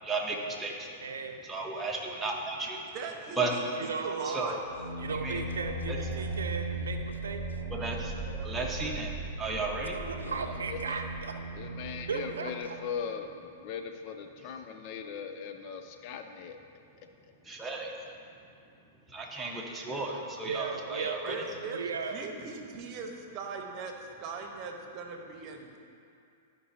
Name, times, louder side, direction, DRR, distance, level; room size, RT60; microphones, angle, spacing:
voice 1, 0.0-1.0 1.4-2.8 3.4-3.5 4.2-4.6 5.1-5.4 5.9-6.0 7.7-8.1 8.4-9.9 17.5-17.9 19.1-21.4, right 3 dB, 10° right, -2 dB, 1.3 m, -34 dB
voice 2, 1.0-1.4 3.8-4.6 5.0-7.6 9.9-11.3 12.1-12.8 20.4-22.2, right 5 dB, 85° right, 5 dB, 0.6 m, -36 dB
voice 3, 2.9-4.6 21.3-21.8 22.1-23.9 24.2-25.8, right 4 dB, 40° right, 3 dB, 1.1 m, -40 dB
sound 1, 4.7-13.2, right 2 dB, 90° left, 2.0 m, -38 dB
voice 4, 10.5-11.0 11.5-16.5 21.3-21.6, left 7 dB, 50° left, 6 dB, 0.6 m, -39 dB
13.5 x 5.3 x 2.9 m, 2.5 s
hypercardioid pair, 115°, 0 cm